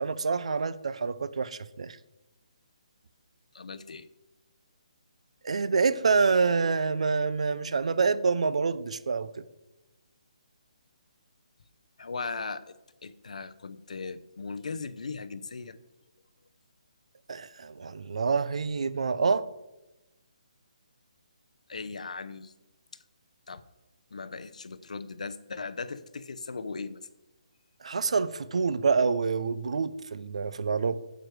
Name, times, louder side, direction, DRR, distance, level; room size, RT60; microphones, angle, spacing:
voice 1, 0.0-2.0 5.4-9.4 17.3-19.5 27.8-31.0, right 4 dB, 60° right, 17 dB, 0.6 m, -27 dB
voice 2, 3.5-4.1 12.0-12.7 13.0-15.8 21.7-22.5 23.5-23.6 24.1-27.0, left 4 dB, 75° left, 14 dB, 0.7 m, -38 dB
9.1 x 8.1 x 4.7 m, 1.0 s
hypercardioid pair, 175°, 4 cm